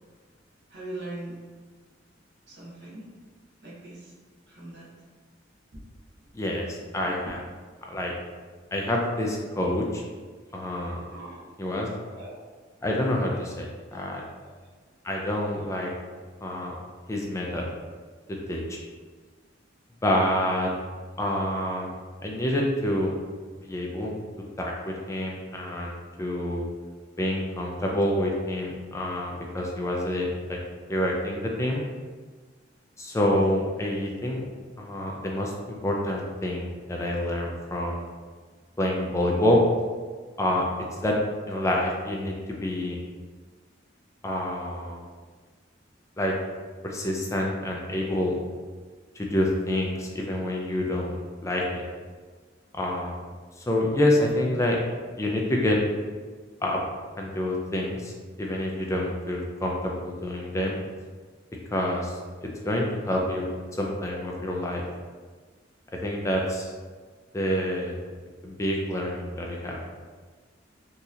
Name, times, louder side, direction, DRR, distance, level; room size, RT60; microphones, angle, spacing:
voice 1, 0.7-1.4 2.5-3.1 3.6-4.1 4.5-4.9 5.7-5.8 7.0-7.1 11.1-11.5 12.1-12.3 14.0-14.1 14.4-14.5, right 2 dB, 60° right, -5 dB, 1.0 m, -40 dB
voice 2, 6.3-7.4 7.9-8.1 8.7-10.0 10.5-11.0 11.6-11.9 12.8-14.2 15.0-15.9 16.4-16.7 17.1-17.7 18.3-18.8 20.0-20.7 21.2-21.9 22.2-23.1 23.6-24.1 24.6-26.7 27.2-30.6 30.9-31.8 33.0-34.5 34.8-38.0 38.8-39.6 40.4-40.7 40.9-41.2 41.5-42.3 42.6-43.0 44.2-45.0 46.2-46.3 46.8-48.4 49.2-51.8 52.7-53.2 53.7-54.8 55.2-55.8 56.6-56.8 57.2-58.1 58.4-60.8 61.7-63.5 63.8-64.8 66.0-66.7 67.3-67.9 68.4-69.8, left 1 dB, 15° left, -1 dB, 0.4 m, -27 dB
4.1 x 2.8 x 2.4 m, 1.5 s
head